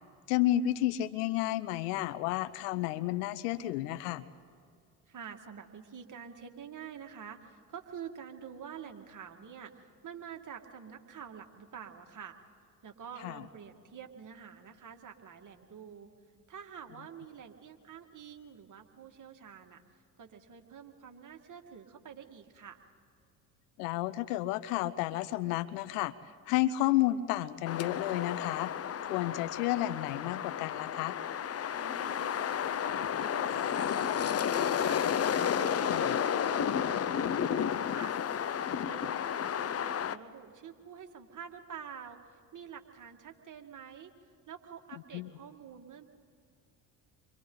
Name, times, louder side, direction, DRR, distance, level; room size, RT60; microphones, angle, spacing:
voice 1, 0.3-4.2 13.2-13.4 23.8-26.1 26.5-28.7 29.1-31.2 35.9-36.1 45.1-45.3, left 14 dB, 80° left, 16 dB, 0.9 m, -31 dB
voice 2, 5.1-12.4 12.8-16.1 16.5-22.8 31.8-38.1 38.6-44.1 44.5-46.0, right 7 dB, 40° right, 4 dB, 2.1 m, -48 dB
sound 1, 27.7-40.2, left 8 dB, 30° left, 0.7 m, -32 dB
29.5 x 24.0 x 4.0 m, 2.3 s
hypercardioid pair, 65°, 46 cm